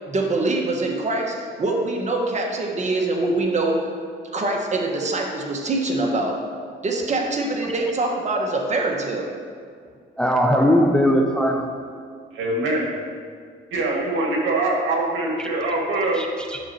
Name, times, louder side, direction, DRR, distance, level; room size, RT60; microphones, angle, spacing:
voice 1, 0.1-3.9 4.3-6.4 6.8-9.4, right 2 dB, 35° right, 1 dB, 1.2 m, -24 dB
voice 2, 10.2-11.8 15.4-15.5 16.1-16.6, equal, 5° left, 3 dB, 0.6 m, -20 dB
voice 3, 12.3-12.9 13.7-16.2, right 2 dB, 75° right, -2 dB, 1.8 m, -23 dB
10.5 x 6.4 x 2.8 m, 2.1 s
cardioid pair, 90°, 20 cm